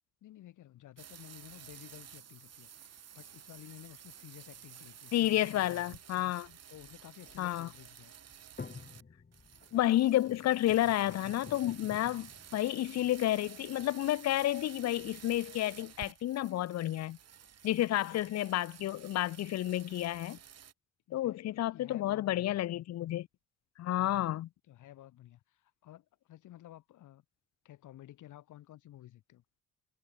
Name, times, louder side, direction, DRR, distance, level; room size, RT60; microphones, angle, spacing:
voice 1, 0.2-6.0 6.7-8.1 21.1-22.6 23.9-27.2 27.6-29.4, left 13 dB, 80° left, 7.0 m, -53 dB
sound 1, 1.0-9.0 9.3-20.7, right 9 dB, 55° right, 4.2 m, -53 dB
voice 2, 5.1-6.5 7.4-7.7 9.7-17.2 17.6-20.4 21.1-23.3 23.8-24.5, left 14 dB, 60° left, 0.6 m, -30 dB
sound 2, 6.8-12.5, left 4 dB, 30° left, 7.3 m, -50 dB
cardioid pair, 90°, 30 cm